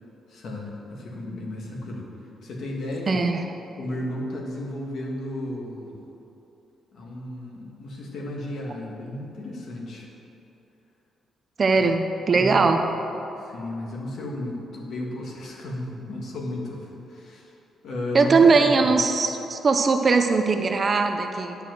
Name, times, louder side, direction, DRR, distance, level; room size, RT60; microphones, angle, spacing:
voice 1, 0.3-2.1 2.4-3.2 3.8-6.0 6.9-10.1 11.7-11.9 12.3-12.7 13.4-17.5 17.8-19.0, left 1 dB, 55° left, -1 dB, 1.7 m, -34 dB
voice 2, 3.1-3.4 11.6-12.8 18.1-21.6, right 4 dB, 30° right, 6 dB, 0.5 m, -20 dB
10.0 x 4.7 x 7.8 m, 2.9 s
cardioid pair, 160°, 0 cm